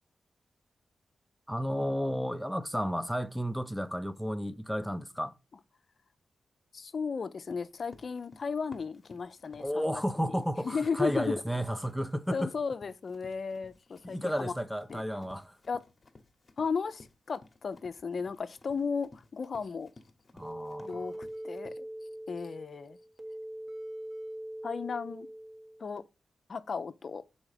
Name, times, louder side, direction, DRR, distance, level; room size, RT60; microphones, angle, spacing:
voice 1, 1.5-5.3 9.6-12.5 14.0-15.6 20.3-21.1, equal, ahead, 0.6 m, -32 dB
voice 2, 6.7-10.0 10.6-11.3 12.3-14.5 14.9-15.0 15.7-15.8 16.6-19.9 20.8-21.9 22.3-23.0 24.6-25.3 25.8-26.0 26.5-27.2, left 5 dB, 60° left, 0.5 m, -35 dB
Run, 7.5-21.7, left 3 dB, 45° left, 1.0 m, -57 dB
sound 1, 20.4-26.0, right 1 dB, 45° right, 1.5 m, -42 dB
6.1 x 4.2 x 4.9 m
cardioid pair, 60°, 0 cm